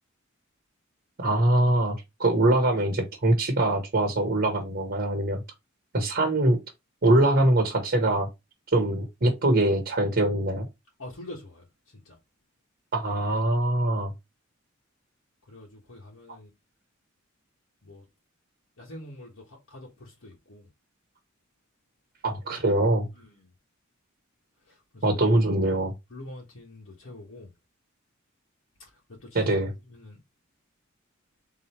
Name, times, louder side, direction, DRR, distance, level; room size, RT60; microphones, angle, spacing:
voice 1, 1.2-5.4 5.9-6.6 7.0-8.3 8.7-10.7 12.9-14.1 22.2-23.1 25.0-25.9 29.3-29.7, right 1 dB, 50° right, 1.0 m, -23 dB
voice 2, 11.0-12.2 15.5-16.5 17.8-18.0 18.8-20.7 23.1-23.5 24.7-25.2 26.1-27.5 29.1-29.6 29.9-30.2, left 1 dB, 80° left, 1.4 m, -45 dB
3.8 x 3.0 x 4.3 m
head